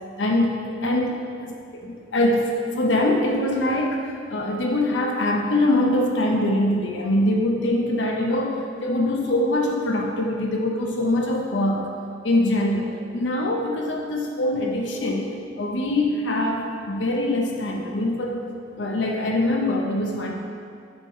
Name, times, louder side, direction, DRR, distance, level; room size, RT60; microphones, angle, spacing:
voice 1, 0.2-11.9 12.2-18.4 18.8-20.3, left 1 dB, 85° left, 0 dB, 0.8 m, -23 dB
7.9 x 5.5 x 4.4 m, 2.4 s
head